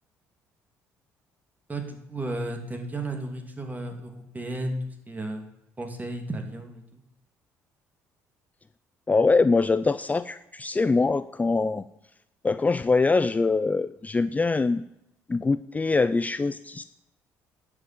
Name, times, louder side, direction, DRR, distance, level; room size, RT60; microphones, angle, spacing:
voice 1, 1.7-5.4 5.8-7.0, right 1 dB, 25° right, 4 dB, 3.0 m, -34 dB
voice 2, 9.1-11.8 12.4-14.8 15.3-16.8, left 3 dB, 20° left, 13 dB, 0.5 m, -23 dB
10.5 x 7.4 x 7.7 m, 0.84 s
supercardioid pair, 65°, 7 cm